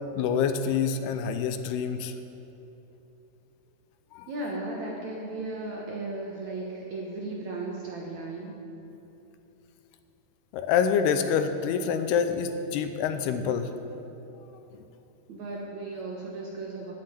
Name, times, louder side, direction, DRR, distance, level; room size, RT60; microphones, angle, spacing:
voice 1, 0.2-2.1 4.1-4.3 10.5-13.7, left 7 dB, 80° left, 9 dB, 2.6 m, -26 dB
voice 2, 4.3-8.6 15.3-16.9, right 2 dB, 65° right, -2 dB, 2.0 m, -35 dB
9.8 x 9.3 x 9.0 m, 3.0 s
omnidirectional pair, 4.7 m